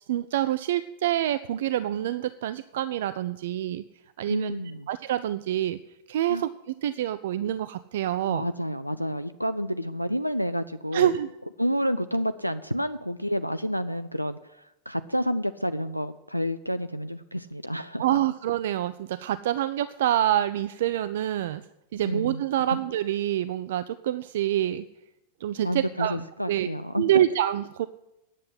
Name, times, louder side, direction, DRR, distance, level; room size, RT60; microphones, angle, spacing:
voice 1, 0.0-3.8 4.2-4.6 4.9-5.8 6.1-8.5 10.9-11.3 18.0-21.6 21.9-24.8 25.4-26.7 27.0-27.9, right 12 dB, 55° right, 14 dB, 0.3 m, -26 dB
voice 2, 4.3-4.9 6.3-6.5 8.3-11.1 11.6-18.0 22.0-22.4 25.6-27.1, equal, 90° left, 12 dB, 0.3 m, -29 dB
9.9 x 7.5 x 8.1 m, 0.92 s
figure-of-eight pair, 90°, 0 cm